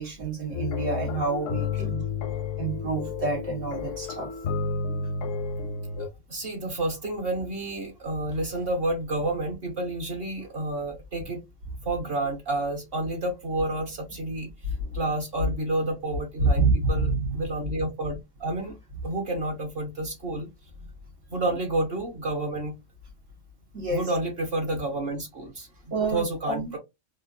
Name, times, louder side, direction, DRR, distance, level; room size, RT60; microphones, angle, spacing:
voice 1, 0.0-2.0 2.6-4.3 14.8-15.0 16.4-17.5 23.7-24.1 25.9-26.7, right 3 dB, 85° right, 2.0 m, -27 dB
sound 1, 0.5-6.1, left 5 dB, 80° left, 0.9 m, -31 dB
voice 2, 6.0-11.4 11.8-14.5 14.9-18.8 19.0-20.5 21.3-22.7 23.9-26.8, right 2 dB, 55° right, 1.2 m, -30 dB
3.6 x 2.6 x 2.5 m
omnidirectional pair, 1.3 m